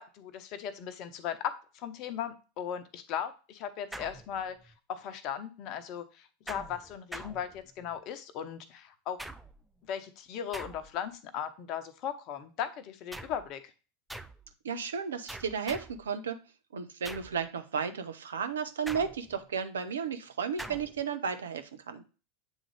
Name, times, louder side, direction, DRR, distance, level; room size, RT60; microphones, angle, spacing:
voice 1, 0.0-9.2 9.9-13.6, left 9 dB, 45° left, 10 dB, 0.8 m, -37 dB
sound 1, 3.9-4.8 6.5-8.0 9.2-9.8 10.5-11.1 13.1-13.5 14.1-14.5 15.3-16.1 17.0-17.5 18.9-19.5 20.6-21.0, right 1 dB, 5° right, 0.4 m, -44 dB
voice 2, 14.6-16.4 16.7-22.0, right 6 dB, 75° right, 9 dB, 0.7 m, -34 dB
8.0 x 3.8 x 3.2 m, 0.33 s
figure-of-eight pair, 85°, 0 cm